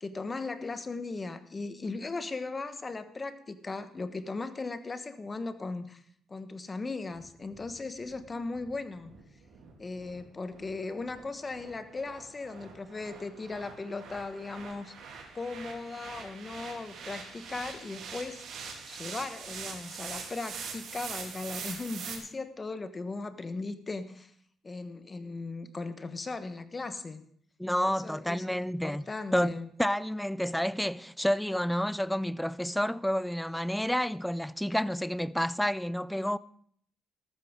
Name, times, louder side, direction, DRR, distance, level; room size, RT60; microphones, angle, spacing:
voice 1, 0.0-6.0 6.3-9.1 9.8-14.9 15.3-18.4 18.9-24.3 24.6-27.2 27.8-29.7, left 3 dB, 30° left, 1.1 m, -38 dB
sound 1, 7.1-22.2, right 5 dB, 75° right, 3.1 m, -44 dB
voice 2, 27.6-29.0 29.3-36.4, equal, 5° left, 0.4 m, -29 dB
13.5 x 13.0 x 3.7 m
cardioid pair, 95°, 0 cm